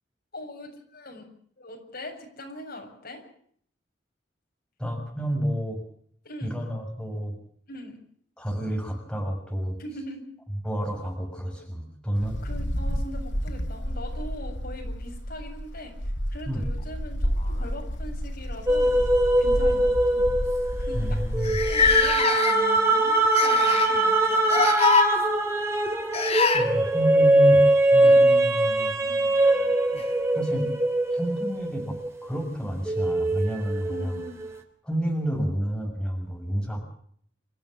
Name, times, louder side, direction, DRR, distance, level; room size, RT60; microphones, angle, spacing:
voice 1, 0.3-1.2 1.6-3.2 6.2-6.5 7.7-8.0 9.8-10.2 12.4-19.0 19.4-20.3 20.8-21.2 21.6-24.7 28.0-28.3 29.0-29.2 33.9-34.4, left 1 dB, 55° left, 2 dB, 7.3 m, -41 dB
voice 2, 4.8-5.8 6.4-7.3 8.4-9.8 10.6-12.4 16.5-16.6 20.9-21.6 26.5-29.1 30.3-30.7 31.1-34.2 34.8-36.8, equal, 5° left, 1 dB, 6.4 m, -30 dB
Wind, 12.2-22.2, equal, 80° left, 3.3 m, -31 dB
sound 1, 16.8-17.9 19.0-19.2 19.6-19.7 20.5-20.6 20.7-20.8 21.4-22.8 23.3-24.0 24.4-25.1 26.1-26.6 28.8-28.9 29.9-30.0, left 5 dB, 35° left, 4.0 m, -23 dB
sound 2, 18.7-32.4 32.9-34.5, right 2 dB, 15° right, 3.5 m, -22 dB
29.5 x 15.0 x 7.5 m, 0.62 s
head